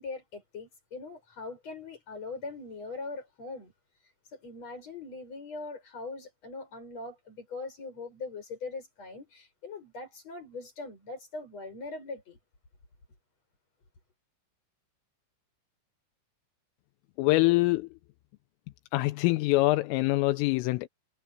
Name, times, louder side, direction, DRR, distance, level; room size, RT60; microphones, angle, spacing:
voice 1, 0.0-3.7 4.3-12.4, left 3 dB, 30° left, 8.9 m, -41 dB
voice 2, 17.2-18.0 18.9-20.9, left 20 dB, 85° left, 3.3 m, -24 dB
omnidirectional pair, 6.0 m